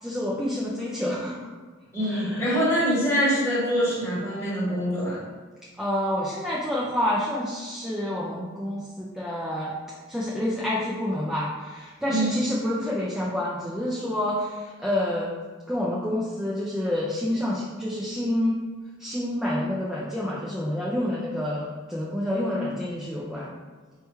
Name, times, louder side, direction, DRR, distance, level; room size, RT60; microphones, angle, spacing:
voice 1, 0.0-1.5 2.1-2.6 5.8-9.7 10.1-15.3 15.7-18.6 19.0-23.5, left 1 dB, 5° right, -6 dB, 0.3 m, -28 dB
voice 2, 1.9-5.2 12.1-12.4, equal, 15° left, -8 dB, 1.0 m, -24 dB
4.3 x 2.3 x 3.0 m, 1.4 s
head